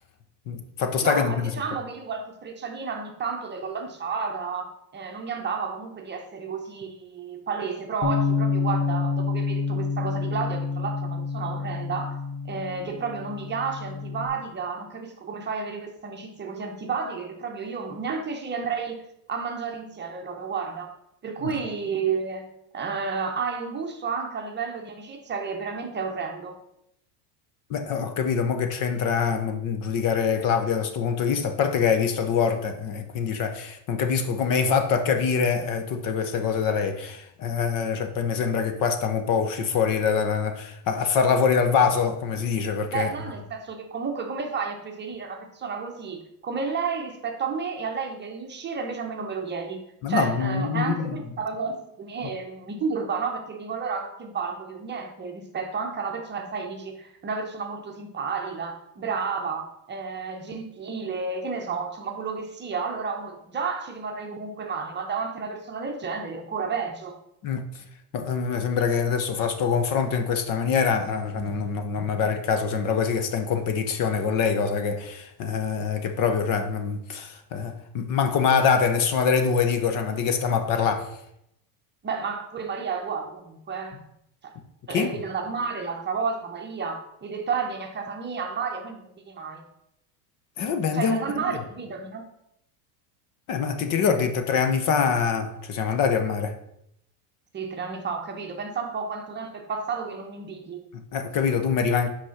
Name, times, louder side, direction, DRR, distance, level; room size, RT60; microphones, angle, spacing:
voice 1, 0.5-1.6 21.4-21.5 27.7-43.1 50.0-51.1 67.4-67.8 68.1-81.1 84.9-85.2 90.6-91.2 93.5-96.5 100.9-102.1, left 6 dB, 40° left, 0.8 m, -24 dB
voice 2, 1.0-12.2 12.4-20.9 21.2-26.6 42.9-49.8 50.1-67.1 82.0-84.0 84.4-84.5 84.9-89.6 90.9-92.2 97.5-100.8, right 5 dB, 20° right, 0.9 m, -31 dB
Bass guitar, 8.0-14.3, left 4 dB, 75° left, 1.8 m, -28 dB
6.0 x 5.0 x 5.7 m
supercardioid pair, 135°, 50 cm